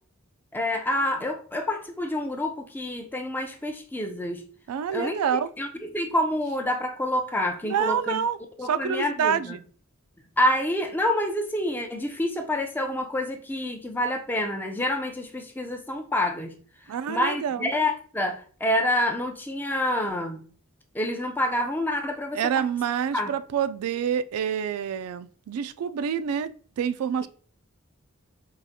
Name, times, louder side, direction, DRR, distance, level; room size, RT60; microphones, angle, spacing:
voice 1, 0.5-4.4 4.9-5.2 5.6-8.2 8.6-9.6 10.4-16.5 17.1-20.4 20.9-22.7 23.1-23.3, left 1 dB, 10° left, 0.3 m, -27 dB
voice 2, 4.7-5.5 7.6-8.4 8.6-9.6 16.9-17.7 22.4-27.3, right 8 dB, 85° right, 0.3 m, -27 dB
4.7 x 2.4 x 2.7 m
head